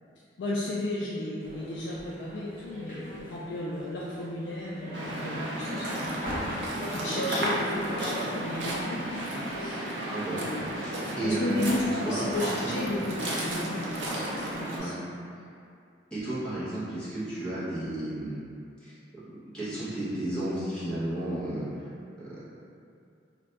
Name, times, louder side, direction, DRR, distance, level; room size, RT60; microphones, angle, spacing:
voice 1, 0.4-6.6 6.9-9.8 10.4-10.7 11.2-15.2, left 1 dB, 65° left, -6 dB, 0.3 m, -34 dB
sound 1, 1.4-14.7, equal, 45° left, 1.1 m, -40 dB
Waves surf, 4.9-14.8, right 1 dB, 70° right, 0.5 m, -34 dB
voice 2, 10.0-10.4 10.7-11.6 12.0-12.8 14.7-14.9 16.1-18.4 18.8-18.9 19.5-21.7 22.2-22.4, right 1 dB, 5° left, -12 dB, 0.8 m, -33 dB
2.4 x 2.2 x 3.9 m, 2.4 s
head